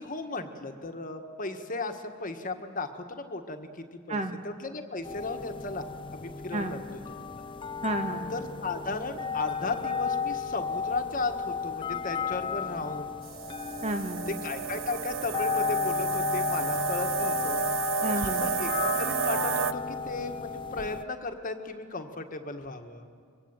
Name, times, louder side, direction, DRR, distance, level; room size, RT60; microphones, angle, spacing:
voice 1, 0.0-5.8 6.1-6.8 7.3-7.4 8.3-13.2 14.4-17.6 18.1-23.1, left 3 dB, 40° left, 6 dB, 1.6 m, -35 dB
voice 2, 4.1-4.4 6.5-6.7 7.8-8.4 13.8-14.4 18.0-18.5, right 2 dB, 35° right, 5 dB, 1.9 m, -31 dB
sound 1, 5.0-21.0, left 6 dB, 25° left, 0.8 m, -33 dB
sound 2, 13.2-19.7, right 8 dB, 80° right, 0.7 m, -32 dB
25.0 x 22.5 x 9.0 m, 2.2 s
head